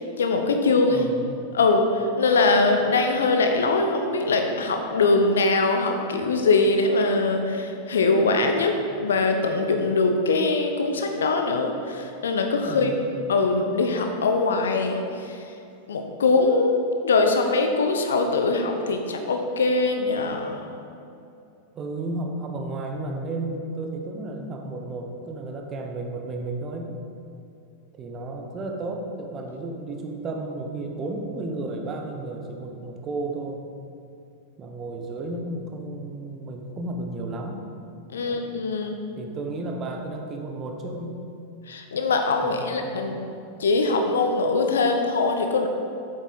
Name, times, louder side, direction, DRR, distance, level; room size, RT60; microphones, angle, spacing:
voice 1, 0.2-1.0 1.5-12.9 13.3-15.4 15.9-20.6 38.1-39.0 41.7-43.2 43.6-45.7, left 3 dB, 65° left, 4 dB, 0.8 m, -22 dB
voice 2, 0.9-1.2 12.6-13.1 21.7-26.9 28.0-33.6 34.6-37.7 38.2-38.4 39.2-41.2 42.4-42.9, right 2 dB, 30° right, 3 dB, 1.1 m, -33 dB
8.0 x 7.8 x 4.1 m, 2.7 s
figure-of-eight pair, 90°, 0 cm